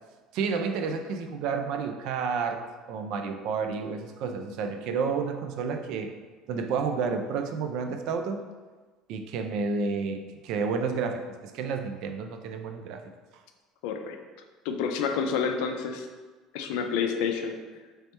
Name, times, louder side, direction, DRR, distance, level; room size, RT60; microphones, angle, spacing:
voice 1, 0.3-6.1 6.5-8.4 9.1-13.0, right 5 dB, 60° right, 6 dB, 0.3 m, -30 dB
voice 2, 13.8-14.2 14.6-16.1 16.5-17.6, left 6 dB, 80° left, 5 dB, 0.4 m, -29 dB
3.2 x 2.9 x 3.2 m, 1.4 s
cardioid pair, 150°, 0 cm